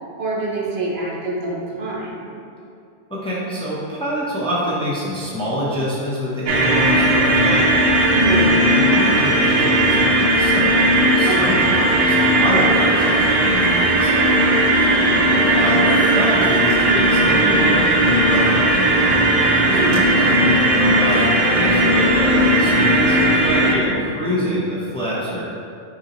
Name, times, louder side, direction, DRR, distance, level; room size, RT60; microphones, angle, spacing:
voice 1, 0.2-2.3 8.1-8.5 11.2-11.7 14.9-15.3 19.6-20.1 23.6-23.9, right 2 dB, 75° right, -4 dB, 1.0 m, -26 dB
voice 2, 3.1-7.7 8.3-14.2 15.5-19.0 19.6-25.5, equal, 5° left, -7 dB, 0.6 m, -26 dB
sound 1, 6.5-23.7, right 1 dB, 55° right, 0.4 m, -16 dB
sound 2, 14.7-16.8 17.1-20.1 20.3-22.2, left 3 dB, 70° left, 0.8 m, -33 dB
5.3 x 2.8 x 2.9 m, 2.5 s
omnidirectional pair, 1.1 m